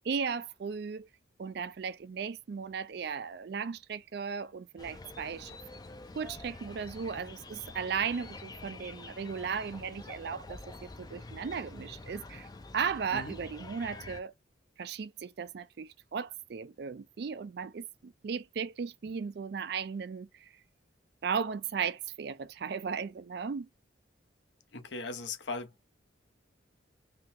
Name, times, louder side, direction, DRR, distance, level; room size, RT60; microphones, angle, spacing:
voice 1, 0.0-1.1 1.4-5.6 6.2-12.5 12.7-14.3 14.8-20.5 21.2-23.7, right 6 dB, 55° right, 0.3 m, -36 dB
sound 1, 4.8-14.2, left 2 dB, 20° left, 0.4 m, -47 dB
voice 2, 24.7-25.9, left 3 dB, 65° left, 0.8 m, -39 dB
3.7 x 2.8 x 2.6 m
head